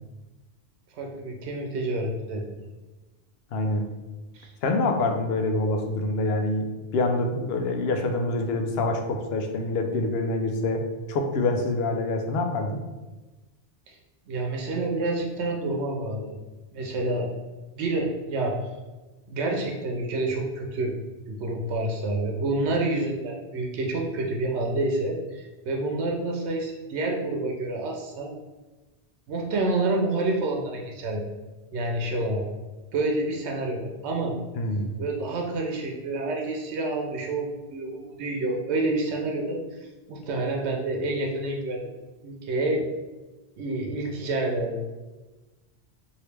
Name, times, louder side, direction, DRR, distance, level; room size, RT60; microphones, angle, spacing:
voice 1, 0.9-2.4 4.3-4.5 13.9-14.0 14.3-16.4 16.7-17.3 17.8-18.6 19.3-20.9 21.3-28.3 29.3-31.2 31.7-32.4 32.9-34.4 35.0-39.6 40.1-42.0 42.2-42.9 43.6-44.8, right 2 dB, 85° right, 0 dB, 0.9 m, -28 dB
voice 2, 3.5-3.9 4.6-6.7 6.9-10.8 11.1-12.8 34.5-34.9, left 2 dB, 70° left, 4 dB, 0.8 m, -26 dB
3.0 x 2.8 x 3.3 m, 1.2 s
omnidirectional pair, 1.1 m